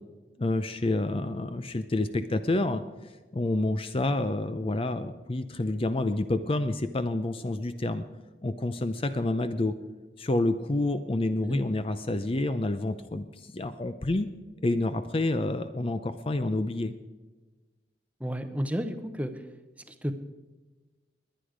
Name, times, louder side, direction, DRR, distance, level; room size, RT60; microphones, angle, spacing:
voice 1, 0.4-2.8 3.3-8.0 8.4-9.7 10.2-13.3 13.5-14.3 14.6-16.9, left 2 dB, 30° left, 11 dB, 0.5 m, -28 dB
voice 2, 18.2-19.3 19.9-20.1, equal, 10° right, 9 dB, 0.8 m, -31 dB
20.5 x 9.7 x 5.0 m, 1.2 s
head